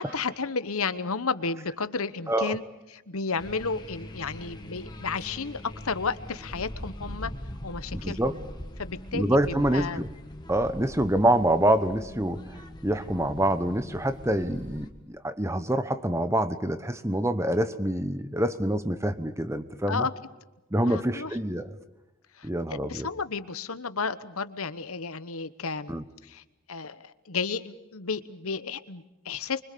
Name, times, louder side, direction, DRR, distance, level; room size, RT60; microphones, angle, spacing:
voice 1, 0.0-2.6 2.9-7.3 7.6-8.4 8.8-10.0 19.9-20.1 20.8-21.3 22.4-25.9 26.2-26.4 26.7-29.6, left 4 dB, 75° left, 13 dB, 1.1 m, -32 dB
voice 2, 2.3-2.6 7.9-8.3 9.1-10.1 10.5-20.1 20.7-21.7 22.4-23.1 25.9-26.0, right 1 dB, 10° right, 11 dB, 1.0 m, -26 dB
sound 1, 3.4-14.9, equal, 20° left, 1.6 m, -41 dB
25.0 x 24.5 x 6.8 m, 1.0 s
head